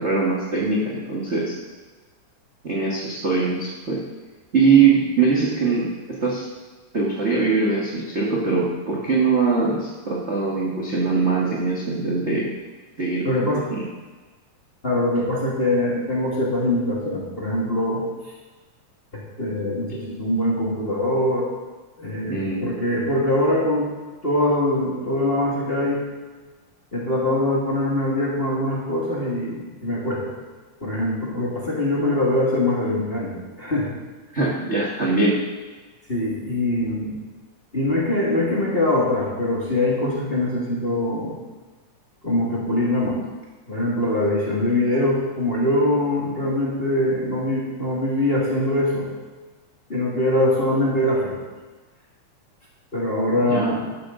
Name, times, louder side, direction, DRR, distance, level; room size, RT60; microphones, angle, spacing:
voice 1, 0.0-1.6 2.6-4.0 4.5-6.5 6.9-12.5 13.0-13.8 22.2-22.7 34.3-35.4 53.4-53.7, right 4 dB, 30° right, -5 dB, 1.3 m, -22 dB
voice 2, 13.2-13.6 14.8-18.3 19.1-21.5 22.0-24.0 24.2-26.0 26.9-30.4 30.8-34.0 36.1-37.2 37.7-41.4 42.2-43.2 43.7-49.1 49.9-51.5 52.9-53.9, left 1 dB, 20° left, -5 dB, 1.9 m, -23 dB
13.0 x 11.5 x 3.9 m, 1.3 s
omnidirectional pair, 3.5 m